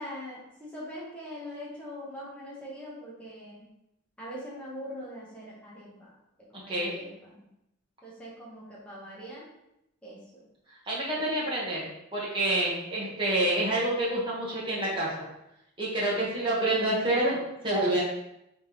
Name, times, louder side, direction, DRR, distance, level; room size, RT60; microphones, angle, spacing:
voice 1, 0.0-3.6 4.2-6.1 6.5-7.4 8.0-9.5 10.0-10.4, equal, 5° left, -7 dB, 1.0 m, -42 dB
voice 2, 10.9-11.9 12.1-15.2 15.8-17.4 17.6-18.0, right 1 dB, 25° right, -6 dB, 1.3 m, -27 dB
4.2 x 3.7 x 3.1 m, 0.83 s
head